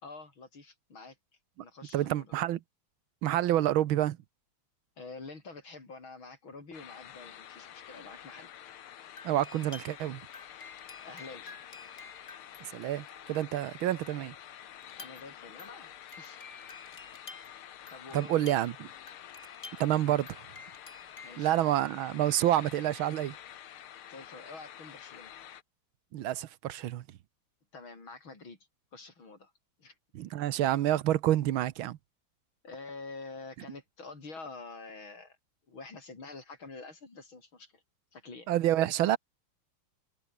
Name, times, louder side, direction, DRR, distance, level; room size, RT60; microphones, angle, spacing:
voice 1, 0.0-1.2 1.6-2.3 5.0-8.5 11.0-11.6 15.0-15.9 16.2-16.4 17.9-18.5 21.2-21.5 24.1-25.3 27.7-28.6 28.9-29.5 29.8-30.0 30.6-30.7 32.6-35.4 35.7-37.8 38.1-38.5, left 3 dB, 70° left, 6.0 m, -47 dB
voice 2, 1.9-2.6 3.2-4.2 9.2-10.2 12.7-14.3 18.1-18.7 19.8-20.4 21.4-23.3 26.1-27.0 30.1-32.0 38.5-39.2, right 13 dB, 75° right, 1.7 m, -28 dB
sound 1, 6.7-25.6, left 10 dB, 90° left, 2.1 m, -49 dB
sound 2, 9.2-13.7 14.8-21.7, left 3 dB, 35° left, 3.1 m, -51 dB
omnidirectional pair, 2.3 m